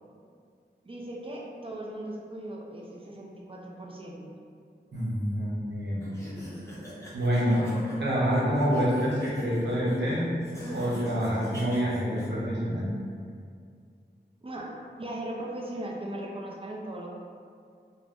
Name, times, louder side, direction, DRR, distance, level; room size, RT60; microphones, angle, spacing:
voice 1, 0.8-4.2 14.4-17.1, right 1 dB, 30° right, -2 dB, 0.4 m, -38 dB
voice 2, 4.9-6.0 7.1-7.6 8.0-10.4 10.7-12.9, equal, 80° right, -8 dB, 0.8 m, -27 dB
sound 1, 6.0-12.3, equal, 15° left, 0.7 m, -43 dB
2.4 x 2.1 x 3.4 m, 2.2 s
wide cardioid pair, 65°, 18 cm